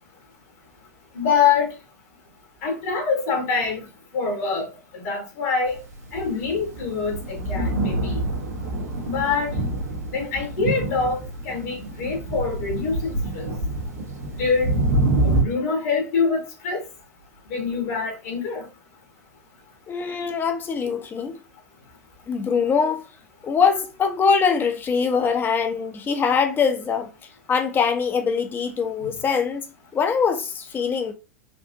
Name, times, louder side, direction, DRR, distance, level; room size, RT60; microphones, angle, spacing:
voice 1, 1.2-1.7 2.6-3.8 4.1-4.7 4.9-5.8 6.1-8.2 9.1-9.5 10.1-11.2 11.5-13.5 14.4-14.7 15.2-16.8 17.5-18.6, left 5 dB, 60° left, 1.8 m, -24 dB
Thunder, 5.9-15.4, right 2 dB, 75° right, 1.2 m, -26 dB
voice 2, 19.9-21.3 22.3-23.0 23.4-27.1 27.5-29.6 29.9-31.1, left 6 dB, 25° left, 0.8 m, -22 dB
4.5 x 2.6 x 2.7 m
hypercardioid pair, 95°, 9 cm